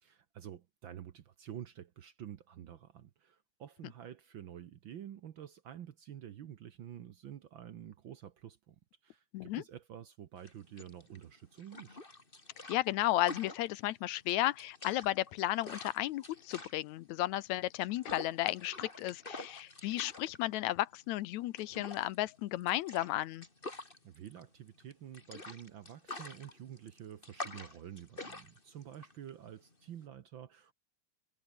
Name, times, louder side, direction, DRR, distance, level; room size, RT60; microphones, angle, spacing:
voice 1, 0.0-8.7 9.0-12.0 23.7-30.7, right 10 dB, 65° right, 1.2 m, -49 dB
sound 1, 10.4-30.1, left 2 dB, 15° left, 3.0 m, -48 dB
voice 2, 12.7-23.5, left 16 dB, 75° left, 2.0 m, -34 dB
omnidirectional pair, 3.4 m